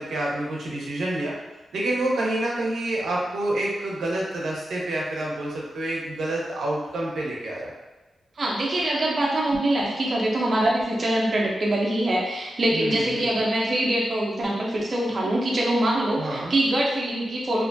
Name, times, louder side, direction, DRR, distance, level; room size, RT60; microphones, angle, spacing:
voice 1, 0.0-1.3 1.7-7.7 12.7-13.3 16.2-16.5, right 1 dB, 85° right, -4 dB, 0.6 m, -28 dB
voice 2, 8.4-17.6, right 1 dB, 40° right, -3 dB, 0.4 m, -24 dB
2.4 x 2.2 x 2.5 m, 1.1 s
wide cardioid pair, 150°, 0 cm